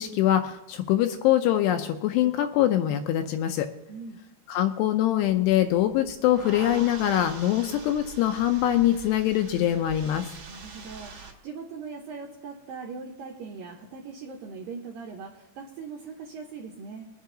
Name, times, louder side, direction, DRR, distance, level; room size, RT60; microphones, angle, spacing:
voice 1, 0.0-3.7 4.5-10.3, left 12 dB, 80° left, 7 dB, 2.5 m, -23 dB
voice 2, 3.9-4.2 10.5-17.1, right 5 dB, 80° right, 1 dB, 2.1 m, -40 dB
sound 1, 5.2-11.3, right 5 dB, 50° right, 1.9 m, -44 dB
21.5 x 8.3 x 3.8 m, 0.95 s
omnidirectional pair, 5.3 m